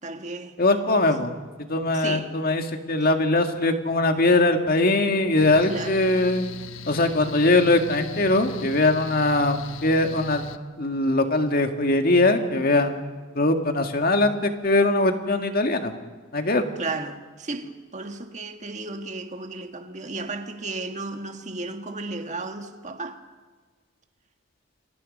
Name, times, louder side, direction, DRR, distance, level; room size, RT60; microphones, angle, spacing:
voice 1, 0.0-0.6 1.0-1.2 1.9-2.4 5.6-6.1 16.8-23.2, right 3 dB, 35° right, 1.8 m, -34 dB
voice 2, 0.6-1.3 1.7-2.6 2.9-6.5 6.9-10.4 10.8-13.0 13.4-15.9 16.3-16.6, left 2 dB, 45° left, 2.0 m, -21 dB
Mechanical fan, 5.4-10.6, left 3 dB, 70° left, 1.1 m, -40 dB
29.5 x 24.0 x 5.5 m
head